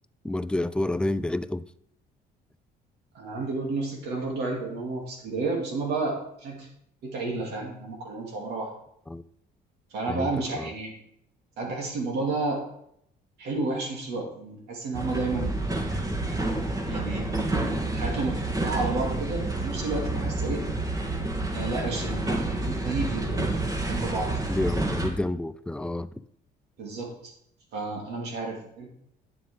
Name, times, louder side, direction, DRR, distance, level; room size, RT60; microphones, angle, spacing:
voice 1, 0.2-1.6 9.1-9.2 10.1-10.7 15.9-16.0 24.5-26.2, left 1 dB, 5° left, 0.3 m, -29 dB
voice 2, 3.1-6.7 7.0-8.7 9.9-10.9 11.6-12.6 13.4-15.6 16.8-17.6 17.9-20.6 21.5-24.5 26.8-27.3 27.7-28.9, right 3 dB, 75° right, 2.8 m, -31 dB
sound 1, 14.9-25.1, right 2 dB, 20° right, 1.4 m, -29 dB
9.3 x 7.5 x 3.7 m
cardioid pair, 110°, 17 cm